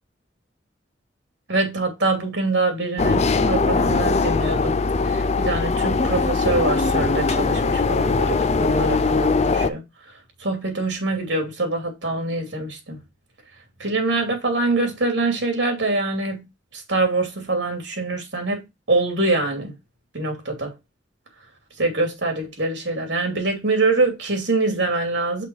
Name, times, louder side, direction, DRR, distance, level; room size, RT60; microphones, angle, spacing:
voice 1, 1.5-4.8 5.0-9.8 10.4-13.0 13.8-16.5 16.7-19.7 20.1-20.7 21.8-25.4, right 3 dB, 80° right, 2.7 m, -24 dB
sound 1, 3.0-9.7, left 3 dB, 40° left, 0.5 m, -21 dB
5.9 x 4.5 x 4.6 m
head